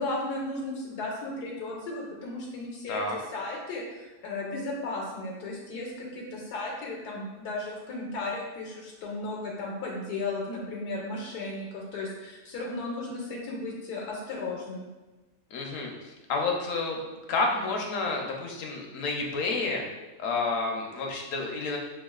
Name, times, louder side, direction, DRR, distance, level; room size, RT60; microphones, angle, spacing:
voice 1, 0.0-14.9, left 2 dB, 80° left, -2 dB, 1.2 m, -35 dB
voice 2, 15.5-17.0 17.3-19.8 20.2-21.8, left 3 dB, 65° left, 0 dB, 0.9 m, -30 dB
5.9 x 2.3 x 2.3 m, 1.1 s
omnidirectional pair, 1.7 m